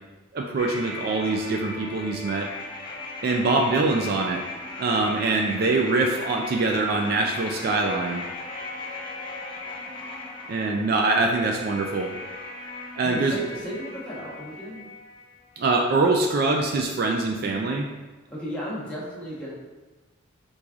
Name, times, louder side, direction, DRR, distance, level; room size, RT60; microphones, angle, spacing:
voice 1, 0.3-2.5 3.2-4.4 4.8-8.2 10.5-12.1 13.0-13.4 15.6-17.9, right 3 dB, 45° right, 2 dB, 0.3 m, -24 dB
sound 1, 0.6-15.6 15.9-16.0, left 2 dB, 25° left, 0.6 m, -38 dB
voice 2, 13.0-14.9 18.3-19.5, equal, 5° left, -8 dB, 1.0 m, -34 dB
4.6 x 3.9 x 2.4 m, 1.2 s
head